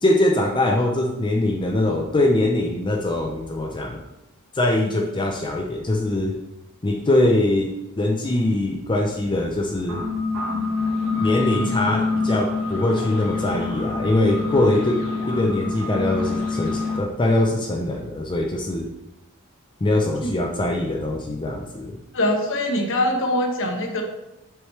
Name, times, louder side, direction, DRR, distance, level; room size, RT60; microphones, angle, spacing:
voice 1, 0.0-4.0 4.5-6.3 6.8-7.7 8.0-10.0 11.2-15.0 15.3-18.9 19.8-21.9, left 1 dB, 20° left, 1 dB, 0.5 m, -22 dB
sound 1, 9.8-17.0, left 3 dB, 85° right, 2.0 m, -26 dB
voice 2, 22.1-24.0, left 1 dB, 60° left, 3 dB, 1.0 m, -23 dB
6.4 x 4.8 x 3.1 m, 0.92 s
head